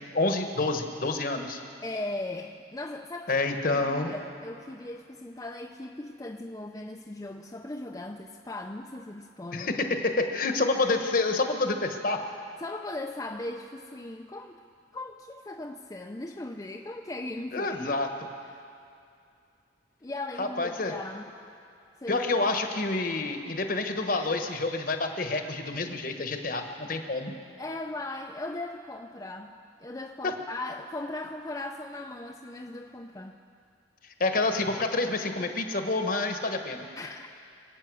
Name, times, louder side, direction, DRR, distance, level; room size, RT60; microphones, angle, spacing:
voice 1, 0.0-1.6 3.3-4.1 9.5-12.2 17.5-18.1 20.4-20.9 22.1-27.3 34.2-36.8, left 3 dB, 45° left, 5 dB, 1.2 m, -28 dB
voice 2, 1.8-9.7 12.6-14.6 14.9-18.0 18.5-18.6 20.0-21.3 22.0-22.2 27.6-33.4 37.0-37.3, left 2 dB, 20° left, 2 dB, 0.5 m, -38 dB
26.0 x 8.9 x 6.2 m, 2.5 s
head